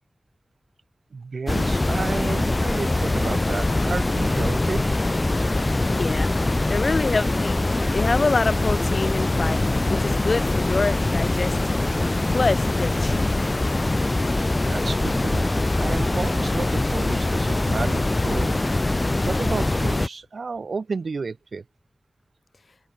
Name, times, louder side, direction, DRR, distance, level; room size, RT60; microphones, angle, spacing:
voice 1, 1.1-4.9 14.6-15.5 15.8-18.6 19.2-21.6, right 4 dB, 75° right, 6.7 m, -31 dB
sound 1, 1.5-20.1, left 2 dB, 30° left, 2.2 m, -23 dB
voice 2, 5.9-6.3 6.7-7.6 7.9-11.8 12.3-13.3, left 3 dB, 60° left, 4.4 m, -26 dB
wide cardioid pair, 80°, 0 cm